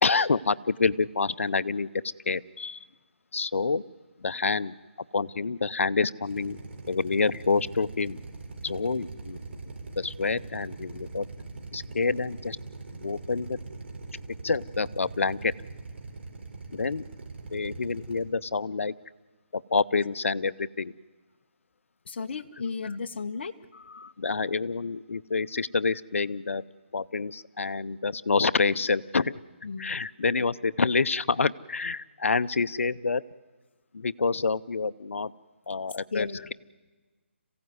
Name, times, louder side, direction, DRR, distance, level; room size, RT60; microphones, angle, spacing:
voice 1, 0.0-1.9 2.3-2.8 3.3-3.8 4.2-4.7 5.1-6.6 6.9-8.2 8.6-9.4 10.0-11.3 11.7-12.6 12.9-13.6 14.4-15.5 16.7-17.0 17.5-18.9 19.5-20.9 23.7-26.6 26.9-29.4 29.8-33.2 33.9-35.3 35.7-36.5, left 4 dB, 80° left, 15 dB, 0.7 m, -27 dB
Drill, 6.2-18.2, right 3 dB, 60° right, 4.0 m, -41 dB
voice 2, 22.1-23.5 29.6-30.0 36.1-36.5, left 5 dB, 55° left, 6 dB, 1.0 m, -34 dB
26.5 x 16.0 x 9.5 m, 1.3 s
hypercardioid pair, 160°, 7 cm